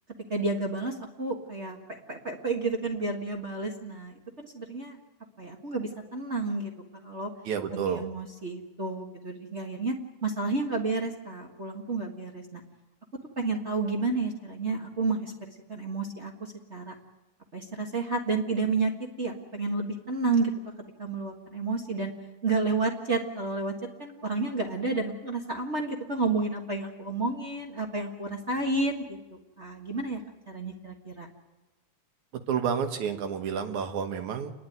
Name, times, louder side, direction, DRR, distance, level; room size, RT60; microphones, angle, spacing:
voice 1, 0.3-5.0 5.4-7.3 7.7-10.0 10.2-12.6 13.4-16.9 17.5-18.9 19.2-20.5 21.0-22.1 22.4-23.7 24.0-30.2 30.5-31.3, right 3 dB, 35° right, 1 dB, 1.1 m, -31 dB
voice 2, 7.5-8.0 32.5-34.5, right 7 dB, 70° right, 6 dB, 2.6 m, -30 dB
29.5 x 11.0 x 9.3 m, 1.1 s
omnidirectional pair, 3.7 m